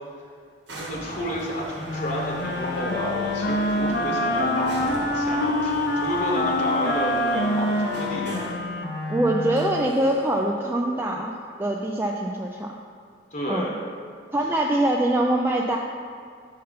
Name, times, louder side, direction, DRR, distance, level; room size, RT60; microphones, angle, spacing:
sound 1, 0.7-8.7 9.5-10.5, right 1 dB, 80° right, 1.1 m, -38 dB
voice 1, 0.8-8.5 13.3-13.8, equal, 45° left, -3 dB, 1.0 m, -30 dB
Wind instrument woodwind instrument, 1.9-9.9, left 1 dB, 60° left, 0.6 m, -26 dB
voice 2, 9.1-12.8 13.5-13.8 14.3-15.8, right 1 dB, 15° right, -1 dB, 0.3 m, -24 dB
5.5 x 5.5 x 5.1 m, 2.2 s
head